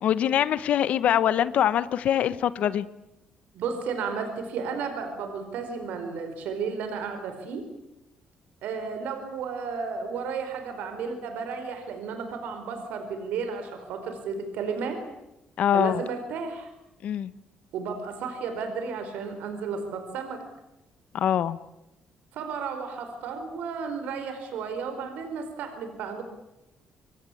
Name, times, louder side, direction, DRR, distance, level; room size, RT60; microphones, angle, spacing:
voice 1, 0.0-2.9 15.6-16.0 17.0-17.3 21.1-21.6, left 10 dB, 60° left, 15 dB, 1.0 m, -23 dB
voice 2, 3.5-7.6 8.6-15.0 15.7-16.7 17.7-20.4 22.3-26.2, right 5 dB, 85° right, 7 dB, 4.6 m, -33 dB
27.0 x 23.5 x 8.5 m, 0.91 s
cardioid pair, 135°, 3 cm